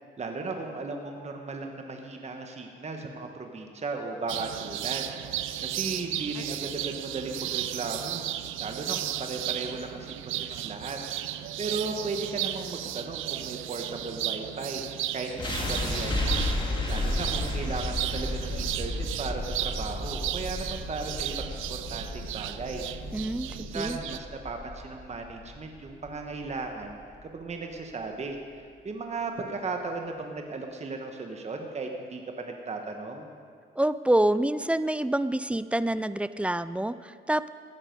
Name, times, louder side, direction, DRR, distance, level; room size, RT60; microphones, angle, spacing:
voice 1, 0.2-8.3 8.6-11.0 11.3-14.8 15.1-16.5 16.9-22.9 23.5-33.3, right 3 dB, 35° right, 3 dB, 1.3 m, -36 dB
sound 1, 4.3-24.2, right 13 dB, 90° right, 0.5 m, -35 dB
sound 2, 15.4-27.4, left 2 dB, 25° left, 2.2 m, -33 dB
voice 2, 23.1-24.0 33.8-37.5, right 1 dB, 5° right, 15 dB, 0.3 m, -27 dB
16.0 x 9.8 x 5.3 m, 2.2 s
cardioid pair, 90°, 20 cm